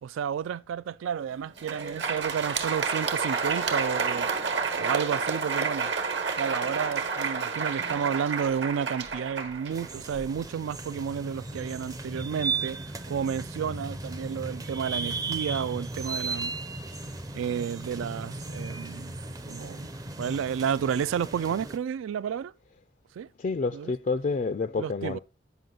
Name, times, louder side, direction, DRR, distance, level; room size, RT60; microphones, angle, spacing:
voice 1, 0.0-4.3 4.7-5.9 6.4-16.5 17.3-19.2 19.5-19.9 20.2-22.5 23.2-23.3 23.7-23.9 24.8-25.2, right 7 dB, 85° right, 0.3 m, -31 dB
Crowd, 1.4-10.4, right 5 dB, 65° right, 1.2 m, -30 dB
sound 1, 9.7-21.8, right 3 dB, 20° right, 0.5 m, -36 dB
voice 2, 23.4-25.2, left 4 dB, 40° left, 0.3 m, -29 dB
9.3 x 5.5 x 3.8 m
head